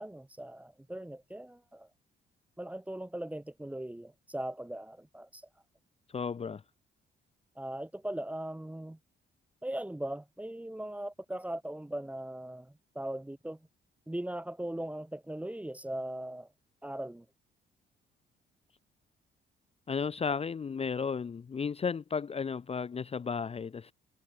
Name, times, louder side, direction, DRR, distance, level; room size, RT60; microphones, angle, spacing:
voice 1, 0.0-1.9 2.6-5.4 7.6-9.0 9.6-13.6 14.1-16.5 16.8-17.2, right 1 dB, 5° right, 1.0 m, -39 dB
voice 2, 6.1-6.6 19.9-23.9, left 6 dB, 30° left, 0.7 m, -34 dB
cardioid pair, 90°, 20 cm